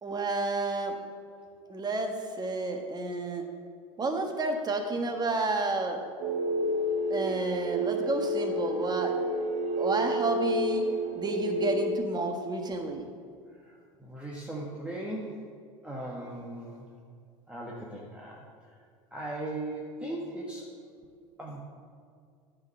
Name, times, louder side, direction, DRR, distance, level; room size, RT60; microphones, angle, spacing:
voice 1, 0.0-0.9 1.7-3.4 4.0-6.0 7.1-9.1 9.8-10.8 11.1-13.1, right 3 dB, 25° right, 4 dB, 1.4 m, -30 dB
sound 1, 6.2-11.9, equal, 55° right, 1.0 m, -30 dB
voice 2, 14.0-15.4 15.8-16.8 17.5-18.4 19.1-20.6 21.4-21.6, right 1 dB, 5° right, -4 dB, 1.4 m, -38 dB
9.3 x 4.9 x 6.8 m, 2.2 s
hypercardioid pair, 90°, 18 cm